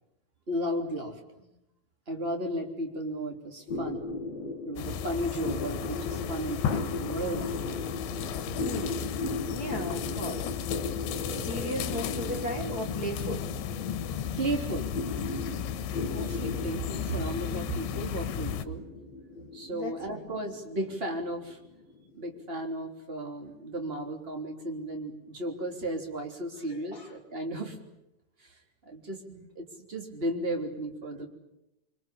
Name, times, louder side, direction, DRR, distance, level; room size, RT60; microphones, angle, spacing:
voice 1, 0.5-1.5 2.1-4.1 4.7-7.6 14.4-14.9 16.0-18.8 19.5-21.6 22.1-27.8 28.4-31.3, right 1 dB, 15° right, 2 dB, 2.9 m, -34 dB
sound 1, 3.7-22.4, left 3 dB, 40° left, 3.1 m, -37 dB
sound 2, 4.8-18.7, left 9 dB, 85° left, 3.7 m, -35 dB
voice 2, 8.6-9.1 9.5-10.6 11.3-13.5 16.5-16.6 19.7-20.2 26.6-26.7 26.9-27.1, right 1 dB, 40° right, 1 dB, 1.2 m, -37 dB
25.5 x 25.5 x 8.6 m, 0.87 s
omnidirectional pair, 5.4 m